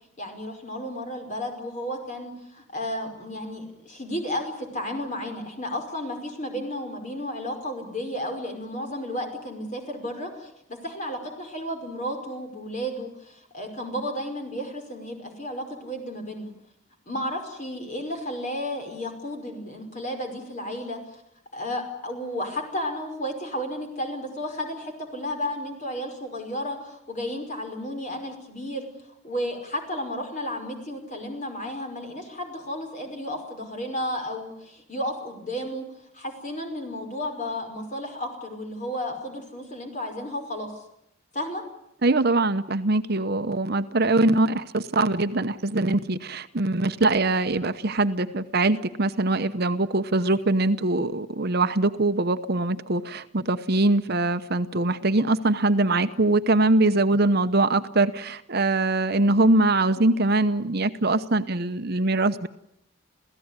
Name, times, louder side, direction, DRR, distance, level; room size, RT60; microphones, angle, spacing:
voice 1, 0.2-16.5 17.1-21.0 21.5-28.9 29.2-35.9 36.1-40.7 41.3-41.6, equal, 35° left, 4 dB, 5.5 m, -33 dB
voice 2, 42.0-62.5, right 2 dB, 50° right, 10 dB, 0.9 m, -22 dB
29.0 x 16.5 x 9.8 m, 0.79 s
head